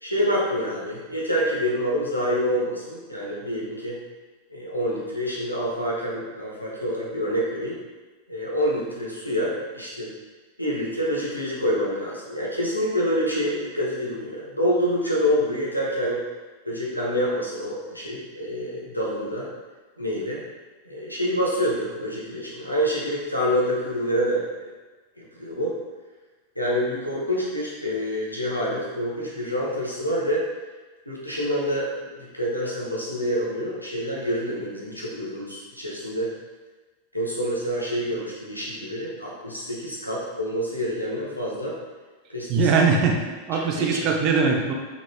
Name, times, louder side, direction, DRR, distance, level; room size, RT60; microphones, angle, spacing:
voice 1, 0.0-4.0 4.5-7.8 8.3-10.1 10.6-16.2 16.7-19.5 20.0-20.4 20.8-24.4 25.2-25.8 26.5-30.5 31.1-36.3 37.1-41.8 42.3-42.7 43.5-44.1, equal, 90° left, -5 dB, 0.8 m, -27 dB
voice 2, 42.5-43.1 43.5-44.7, right 4 dB, 40° right, 1 dB, 0.5 m, -21 dB
3.9 x 3.5 x 2.2 m, 1.3 s
figure-of-eight pair, 90°, 0 cm